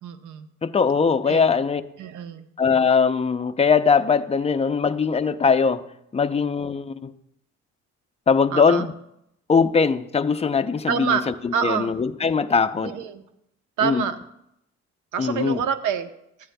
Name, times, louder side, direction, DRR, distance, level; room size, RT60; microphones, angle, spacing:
voice 1, 0.0-0.5 1.3-1.5 2.0-2.4 8.5-8.9 10.9-11.2 11.5-11.9 12.8-13.2 13.8-14.2 15.1-16.1, right 7 dB, 80° right, 0.8 m, -26 dB
voice 2, 0.6-1.8 2.6-5.8 6.1-7.1 8.3-8.9 9.5-13.0 13.8-14.0 15.2-15.6, left 5 dB, 20° left, 0.5 m, -21 dB
14.0 x 9.4 x 2.2 m
cardioid pair, 90°, 30 cm